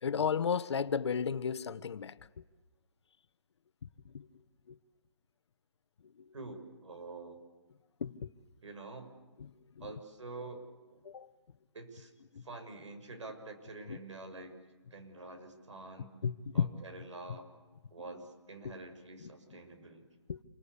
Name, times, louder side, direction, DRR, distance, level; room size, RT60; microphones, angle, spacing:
voice 1, 0.0-2.4 4.0-4.3 4.7-4.8 6.2-6.3 8.0-8.3 9.4-9.9 11.0-11.3 12.3-12.4 13.9-14.0 16.2-16.7 18.6-18.7 19.2-19.3 20.3-20.4, left 6 dB, 65° left, 1.3 m, -34 dB
voice 2, 6.3-7.4 8.6-9.1 9.8-11.0 11.7-12.1 12.4-14.6 14.9-16.1 16.5-17.5 17.9-20.0, right 3 dB, 80° right, 6.9 m, -47 dB
28.5 x 24.5 x 8.3 m
hypercardioid pair, 160°, 15 cm